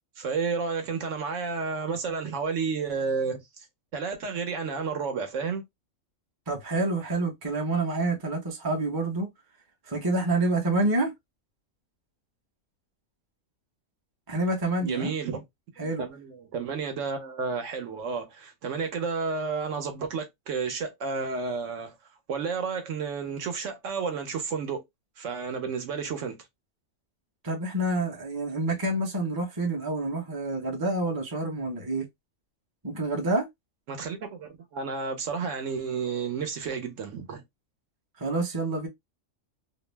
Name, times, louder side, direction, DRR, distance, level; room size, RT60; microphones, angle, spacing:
voice 1, 0.2-3.7 3.9-5.6 14.8-15.4 15.8-21.9 22.3-24.8 25.2-26.4 33.9-37.4, right 5 dB, 70° right, 1.0 m, -31 dB
voice 2, 6.5-9.3 9.9-11.1 14.3-15.1 15.8-16.0 27.4-32.1 32.8-33.5 38.2-38.9, right 2 dB, 25° right, 0.6 m, -28 dB
2.6 x 2.0 x 3.1 m
omnidirectional pair, 1.4 m